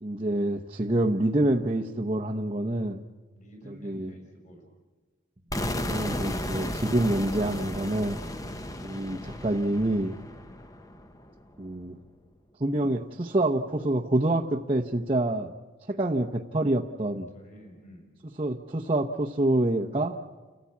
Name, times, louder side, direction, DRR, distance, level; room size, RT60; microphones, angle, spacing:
voice 1, 0.0-3.0 3.7-4.1 5.7-8.2 8.8-10.2 11.6-12.0 12.6-15.5 15.9-17.3 18.4-20.2, right 1 dB, 30° right, -2 dB, 0.8 m, -27 dB
voice 2, 3.4-4.7 17.3-18.1, equal, 40° left, 2 dB, 4.9 m, -49 dB
sound 1, 5.5-11.4, left 1 dB, 15° left, 0.9 m, -34 dB
30.0 x 14.5 x 8.4 m, 1.3 s
head